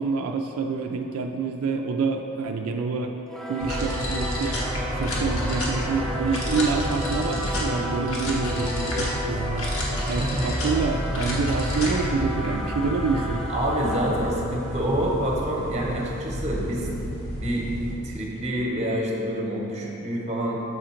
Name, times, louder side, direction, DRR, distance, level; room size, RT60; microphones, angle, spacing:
voice 1, 0.0-3.2 3.5-4.6 4.9-9.7 10.1-13.4, right 4 dB, 85° right, 3 dB, 0.3 m, -27 dB
Singing / Musical instrument, 3.3-16.2, equal, ahead, 0.4 m, -34 dB
sound 1, 3.6-17.9, equal, 70° left, 1.1 m, -30 dB
voice 2, 13.1-16.9 17.3-17.7 18.0-20.6, right 1 dB, 30° right, -2 dB, 0.8 m, -27 dB
6.3 x 3.7 x 4.4 m, 3.0 s
head